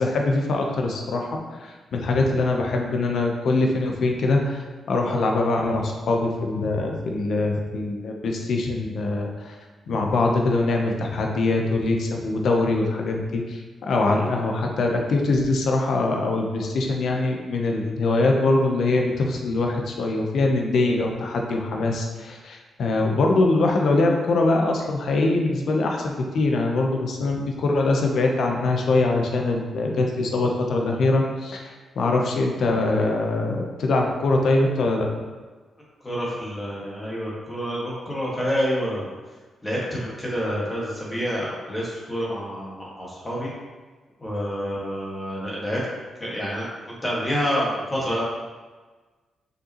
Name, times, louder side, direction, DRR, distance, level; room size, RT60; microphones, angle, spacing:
voice 1, 0.0-9.6 9.9-35.1, left 2 dB, 65° left, 1 dB, 0.9 m, -23 dB
voice 2, 36.0-39.1 39.6-43.5 44.2-45.8 46.2-48.2, equal, 15° left, -6 dB, 1.8 m, -28 dB
6.5 x 5.3 x 3.1 m, 1.3 s
cardioid pair, 120°, 0 cm